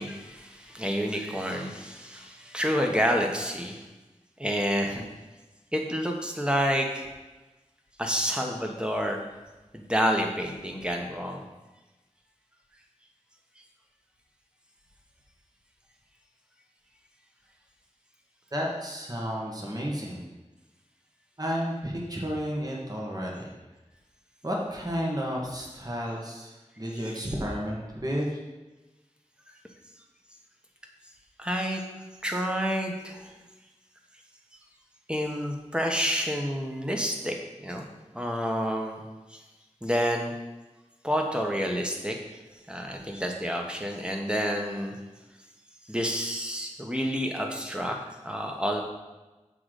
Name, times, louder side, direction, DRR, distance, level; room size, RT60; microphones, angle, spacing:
voice 1, 0.0-3.8 4.4-5.1 5.7-7.1 8.0-9.2 9.7-11.4 31.4-31.8 32.2-33.3 35.1-37.9 38.1-39.0 39.3-39.4 39.8-40.3 41.0-42.2 42.7-45.0 45.8-48.8, equal, 10° right, 2 dB, 1.2 m, -29 dB
voice 2, 18.5-20.2 21.4-23.5 24.4-28.4, equal, 30° right, -2 dB, 1.6 m, -32 dB
7.1 x 3.9 x 6.5 m, 1.1 s
wide cardioid pair, 45°, 12 cm